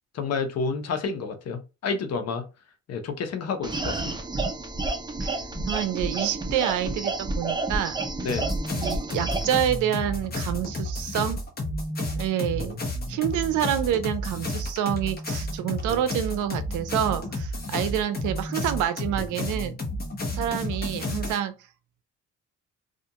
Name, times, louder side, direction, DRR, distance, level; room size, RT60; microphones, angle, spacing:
voice 1, 0.1-2.4 2.9-4.1 8.2-8.4, left 5 dB, 55° left, 0.7 m, -29 dB
sound 1, 3.6-9.6, right 2 dB, 15° right, 0.5 m, -30 dB
voice 2, 5.7-7.9 8.7-11.4 12.1-12.8 13.1-19.8 20.3-21.5, right 10 dB, 80° right, 0.5 m, -27 dB
sound 2, 8.3-21.4, left 1 dB, 30° left, 0.9 m, -31 dB
2.4 x 2.2 x 2.8 m
cardioid pair, 90°, 30 cm